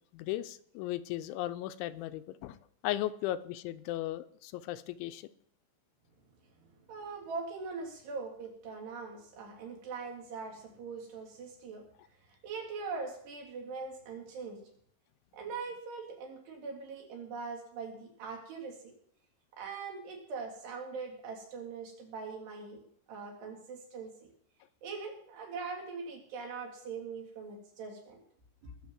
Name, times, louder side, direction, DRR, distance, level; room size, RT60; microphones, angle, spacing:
voice 1, 0.1-2.6 2.8-5.3, left 14 dB, 85° left, 12 dB, 3.1 m, -36 dB
voice 2, 6.9-11.9 12.3-14.6 15.3-18.9 19.6-22.8 23.1-24.1 24.8-28.2, right 4 dB, 65° right, 0 dB, 5.2 m, -42 dB
20.5 x 6.8 x 7.4 m, 0.63 s
omnidirectional pair, 5.4 m